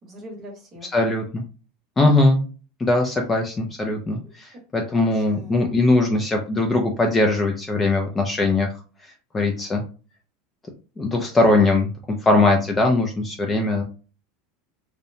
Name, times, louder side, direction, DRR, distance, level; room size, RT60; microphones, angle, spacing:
voice 1, 0.0-0.9 5.1-5.7, equal, 25° right, 1 dB, 0.9 m, -42 dB
voice 2, 0.9-1.4 2.0-2.4 2.8-8.7 9.3-9.8 11.0-11.9 12.2-13.8, left 2 dB, 15° left, 2 dB, 0.3 m, -20 dB
2.7 x 2.0 x 2.6 m, 0.35 s
supercardioid pair, 165°, 0 cm